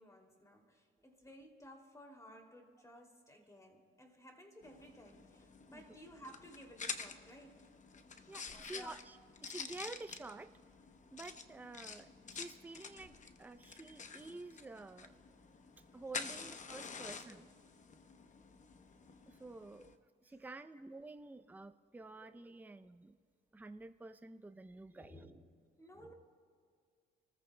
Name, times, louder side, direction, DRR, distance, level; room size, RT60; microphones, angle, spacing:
voice 1, 0.0-7.6 8.5-9.0 16.3-16.4 17.0-17.4 19.8-19.9 21.2-21.3 22.2-22.3 24.9-26.1, equal, 15° left, 2 dB, 2.7 m, -57 dB
sound 1, 4.6-20.0, left 5 dB, 40° left, 0.9 m, -49 dB
voice 2, 8.3-10.5 11.1-15.1 15.9-17.5 19.3-19.9 20.2-23.1 23.5-25.3, right 3 dB, 10° right, 9 dB, 0.5 m, -50 dB
29.5 x 14.0 x 2.2 m, 2.2 s
cardioid pair, 90°, 20 cm